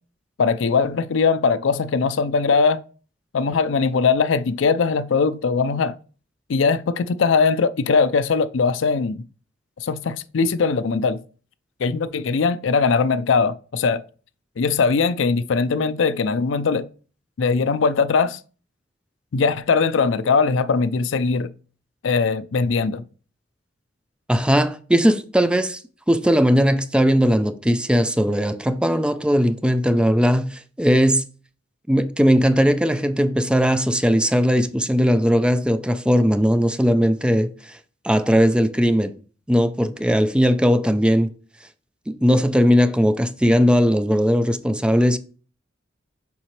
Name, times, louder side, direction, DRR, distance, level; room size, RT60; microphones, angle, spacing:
voice 1, 0.4-2.8 3.3-5.9 6.5-9.2 9.8-11.2 11.8-14.0 14.6-16.9 17.4-18.4 19.3-21.5 22.0-23.0, left 5 dB, 70° left, 0.5 m, -20 dB
voice 2, 24.3-25.8 26.1-31.2 31.9-37.8 38.0-39.1 39.5-41.3 42.1-45.2, equal, 5° right, 0.4 m, -18 dB
7.1 x 5.0 x 3.2 m
head